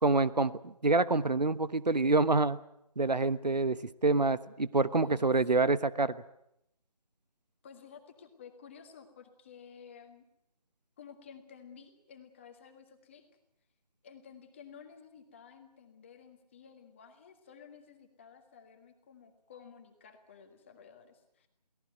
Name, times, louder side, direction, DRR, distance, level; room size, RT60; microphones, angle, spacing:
voice 1, 0.0-2.6 3.0-6.2, right 3 dB, 80° right, 16 dB, 1.1 m, -27 dB
voice 2, 4.9-5.3 7.6-10.2 11.0-13.2 14.0-21.5, left 7 dB, 20° left, 6 dB, 1.7 m, -53 dB
24.0 x 17.5 x 9.1 m, 0.80 s
figure-of-eight pair, 160°, 21 cm